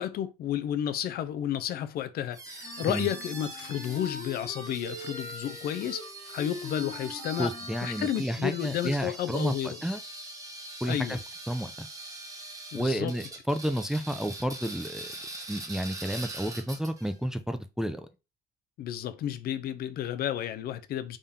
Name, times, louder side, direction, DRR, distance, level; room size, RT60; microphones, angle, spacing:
voice 1, 0.0-6.0 6.3-7.5 7.8-9.8 10.9-11.2 12.7-13.1 18.8-21.2, left 10 dB, 65° left, 0.5 m, -32 dB
sound 1, 2.3-17.1, right 2 dB, 20° right, 1.1 m, -43 dB
sound 2, 2.6-8.4, left 4 dB, 40° left, 0.9 m, -43 dB
voice 2, 7.4-10.0 10.8-11.2 11.5-11.9 12.7-15.1 15.5-18.1, equal, 5° right, 0.4 m, -31 dB
3.7 x 2.7 x 3.5 m
cardioid pair, 110°, 17 cm